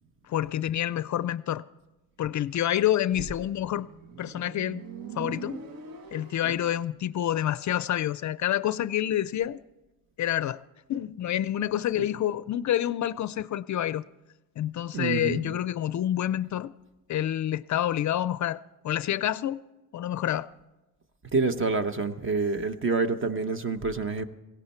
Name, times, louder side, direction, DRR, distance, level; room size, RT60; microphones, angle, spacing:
voice 1, 0.3-1.6 2.2-3.9 4.2-4.8 5.1-5.6 6.1-9.6 10.2-10.6 10.9-14.0 14.6-16.7 17.1-19.6 19.9-20.5, left 11 dB, 50° left, 16 dB, 0.4 m, -28 dB
Motorcycle, 3.4-6.9, right 5 dB, 65° right, 1.3 m, -42 dB
voice 2, 14.9-15.6 21.3-24.2, right 4 dB, 35° right, 9 dB, 1.0 m, -27 dB
18.0 x 17.0 x 4.4 m, 1.1 s
cardioid pair, 135°, 37 cm